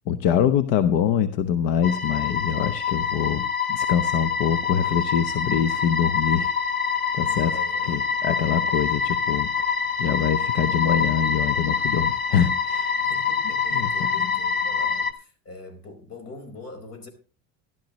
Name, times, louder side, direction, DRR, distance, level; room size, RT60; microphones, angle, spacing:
voice 1, 0.1-6.5 7.1-7.5 7.9-13.0 13.7-13.9 14.2-14.3, left 8 dB, 75° left, 0.9 m, -24 dB
sound 1, 1.8-15.1, left 6 dB, 25° left, 1.2 m, -25 dB
voice 2, 7.3-8.9 13.0-17.1, left 2 dB, 45° left, 4.8 m, -43 dB
14.5 x 12.0 x 3.1 m
cardioid pair, 125°, 35 cm